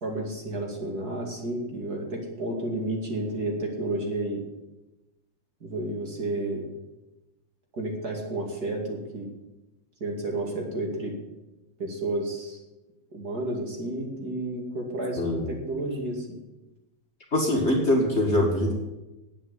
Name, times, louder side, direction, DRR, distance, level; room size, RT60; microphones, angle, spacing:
voice 1, 0.0-4.4 5.6-6.7 7.7-9.3 10.0-11.1 11.8-12.6 13.1-16.4, right 2 dB, 45° right, 0 dB, 2.8 m, -31 dB
voice 2, 17.3-18.7, left 1 dB, 30° left, -1 dB, 2.2 m, -23 dB
9.2 x 8.7 x 9.8 m, 1.0 s
omnidirectional pair, 2.4 m